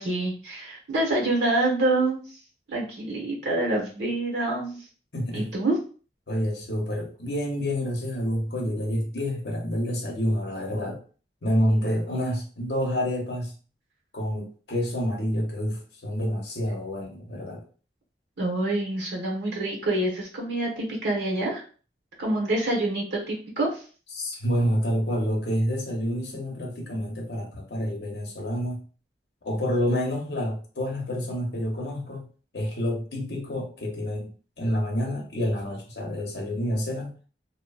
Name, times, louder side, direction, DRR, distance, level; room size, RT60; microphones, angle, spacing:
voice 1, 0.0-2.4 2.7-4.8 5.3-5.8 18.4-21.6 22.2-23.8, right 2 dB, 85° right, -1 dB, 1.0 m, -26 dB
voice 2, 5.1-5.5 6.3-11.0 11.4-13.5 14.1-17.6 24.1-28.8 29.4-32.2 32.5-37.1, equal, 75° left, 1 dB, 0.8 m, -28 dB
2.9 x 2.2 x 2.3 m, 0.39 s
head